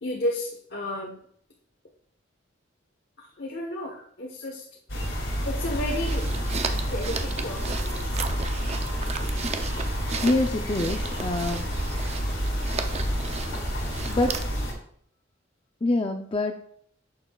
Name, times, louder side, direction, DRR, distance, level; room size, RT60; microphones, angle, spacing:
voice 1, 0.0-1.2 3.2-4.6 5.4-6.3 6.7-8.3, left 1 dB, 65° left, -2 dB, 1.1 m, -33 dB
sound 1, 4.9-14.7, equal, 85° left, 2.5 m, -29 dB
sound 2, 5.7-14.7, right 4 dB, 35° right, 0.5 m, -35 dB
voice 2, 10.2-11.6 14.0-14.4 15.8-16.6, left 2 dB, 30° left, 4 dB, 0.5 m, -25 dB
11.0 x 6.6 x 2.3 m, 0.63 s
head